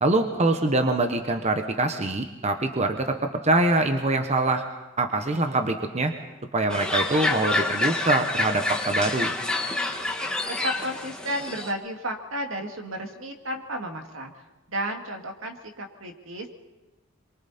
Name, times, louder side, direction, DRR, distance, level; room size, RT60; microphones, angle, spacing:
voice 1, 0.0-3.2 3.4-4.6 5.0-6.1 6.5-9.3, right 2 dB, 35° right, 6 dB, 1.1 m, -24 dB
sound 1, 6.7-11.7, left 2 dB, 5° left, 1.7 m, -27 dB
voice 2, 10.5-14.3 14.7-16.5, equal, 75° right, 3 dB, 2.2 m, -33 dB
27.0 x 23.0 x 4.3 m, 1.1 s
head